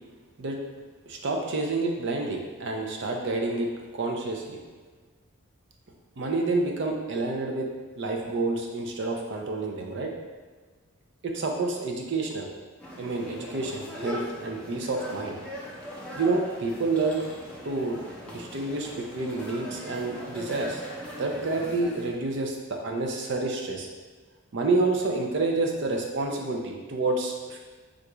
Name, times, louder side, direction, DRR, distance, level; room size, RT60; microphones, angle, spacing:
voice 1, 1.1-4.6 6.2-7.7 8.0-10.1 11.2-12.5 13.0-15.4 16.1-17.2 17.6-18.0 18.3-20.8 21.2-23.9 24.5-27.6, right 3 dB, 55° right, 1 dB, 0.4 m, -28 dB
sound 1, 12.8-22.1, equal, 5° left, 0.4 m, -40 dB
3.7 x 2.3 x 3.0 m, 1.4 s
head